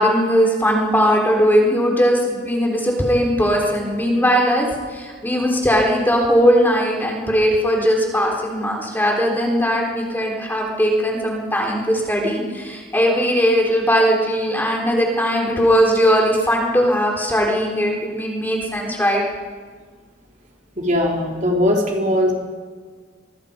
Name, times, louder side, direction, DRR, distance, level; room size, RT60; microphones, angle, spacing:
voice 1, 0.0-19.2, equal, 10° left, 0 dB, 3.9 m, -19 dB
voice 2, 20.8-22.3, left 1 dB, 40° right, -1 dB, 3.7 m, -19 dB
24.0 x 23.5 x 5.3 m, 1.5 s
head